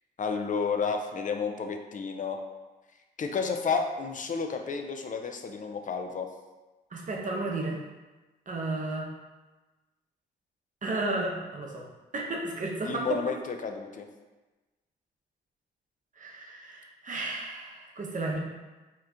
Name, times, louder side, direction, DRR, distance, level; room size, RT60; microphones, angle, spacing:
voice 1, 0.2-2.4 3.2-6.3 12.8-14.1, left 5 dB, 45° left, 5 dB, 0.4 m, -31 dB
voice 2, 6.9-7.8 8.5-9.1 10.8-11.9 12.1-13.2 16.2-18.4, right 2 dB, 45° right, -1 dB, 0.7 m, -33 dB
2.9 x 2.4 x 3.3 m, 1.2 s
supercardioid pair, 55°, 19 cm